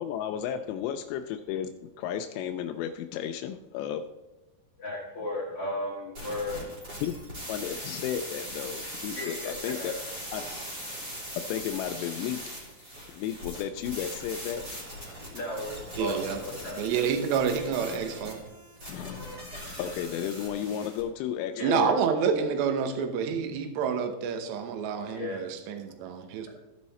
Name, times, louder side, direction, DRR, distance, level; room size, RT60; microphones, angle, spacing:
voice 1, 0.0-4.0 7.0-7.2 7.5-9.9 10.3-10.4 11.5-12.4 13.1-14.6 18.9-21.9, left 9 dB, 90° left, 6 dB, 2.4 m, -33 dB
voice 2, 4.8-6.6 9.1-9.9 15.3-16.2 16.6-17.0 21.5-21.9 25.1-25.4, left 2 dB, 65° left, -5 dB, 1.4 m, -35 dB
sound 1, 6.1-21.0, equal, 25° right, 2.9 m, -40 dB
voice 3, 16.0-16.4 16.8-18.4 21.6-26.6, right 7 dB, 75° right, 6 dB, 2.9 m, -28 dB
15.0 x 5.5 x 4.2 m, 1.1 s
omnidirectional pair, 5.5 m